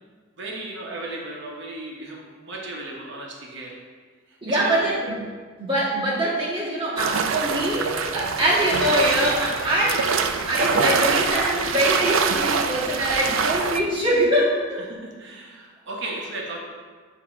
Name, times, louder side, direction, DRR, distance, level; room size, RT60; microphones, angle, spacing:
voice 1, 0.4-3.7 4.3-4.9 14.8-16.6, right 2 dB, 65° right, -1 dB, 1.0 m, -35 dB
voice 2, 4.4-5.1 5.6-14.8, right 1 dB, 30° right, -7 dB, 1.8 m, -23 dB
sound 1, 7.0-13.8, right 5 dB, 85° right, 0.4 m, -24 dB
8.6 x 2.9 x 4.9 m, 1.5 s
head